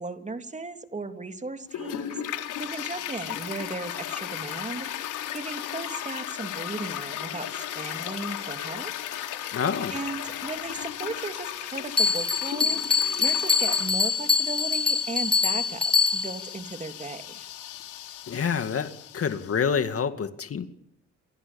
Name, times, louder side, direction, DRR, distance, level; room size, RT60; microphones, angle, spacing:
voice 1, 0.0-8.9 9.5-9.6 9.9-12.8 13.2-17.5, right 3 dB, 25° right, 6 dB, 3.2 m, -36 dB
Toilet flush, 1.7-19.6, left 11 dB, 85° left, 4.0 m, -36 dB
voice 2, 9.5-9.9 18.3-20.7, left 6 dB, 50° left, 9 dB, 2.3 m, -27 dB
Bell, 12.0-16.5, left 5 dB, 15° left, 1.6 m, -24 dB
28.5 x 28.0 x 7.1 m, 0.73 s
cardioid pair, 90°, 30 cm